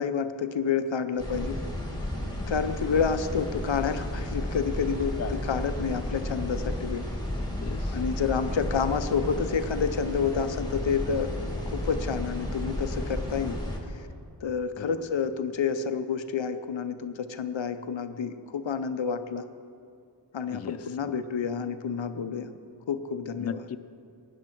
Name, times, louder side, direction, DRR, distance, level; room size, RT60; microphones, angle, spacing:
voice 1, 0.0-1.6 2.5-7.0 7.9-13.6 13.9-14.0 14.4-19.4 20.3-22.5 22.9-23.6, left 6 dB, 75° left, 10 dB, 0.7 m, -29 dB
sound 1, 1.2-13.8, left 1 dB, 10° left, 2.2 m, -33 dB
voice 2, 5.2-5.6 6.6-6.8 7.5-8.0 14.8-15.0 20.5-20.8 21.0-21.2 23.4-23.8, left 7 dB, 35° left, 11 dB, 0.4 m, -37 dB
16.5 x 9.5 x 4.5 m, 2.3 s
wide cardioid pair, 55°, 45 cm